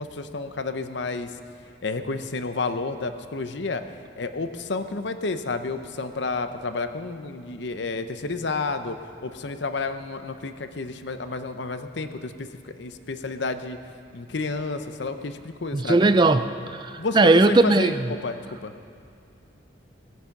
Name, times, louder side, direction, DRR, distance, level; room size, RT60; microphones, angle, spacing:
voice 1, 0.0-1.3 1.8-3.8 4.2-9.0 9.2-13.8 14.1-16.1 17.0-17.9 18.2-18.4 18.6-18.7, left 3 dB, 65° left, 9 dB, 0.7 m, -30 dB
voice 2, 15.7-18.1, right 2 dB, 25° right, 11 dB, 0.4 m, -19 dB
19.0 x 9.2 x 5.9 m, 2.4 s
head